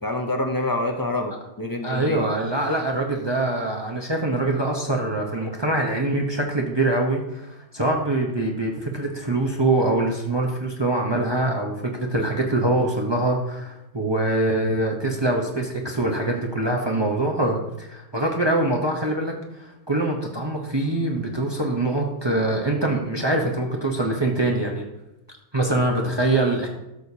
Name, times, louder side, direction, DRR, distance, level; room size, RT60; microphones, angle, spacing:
voice 1, 0.0-2.2, left 2 dB, 20° left, 4 dB, 0.6 m, -27 dB
voice 2, 1.8-24.9 25.5-26.7, right 2 dB, 25° right, 0 dB, 0.8 m, -24 dB
13.0 x 6.4 x 2.8 m, 0.92 s
omnidirectional pair, 1.2 m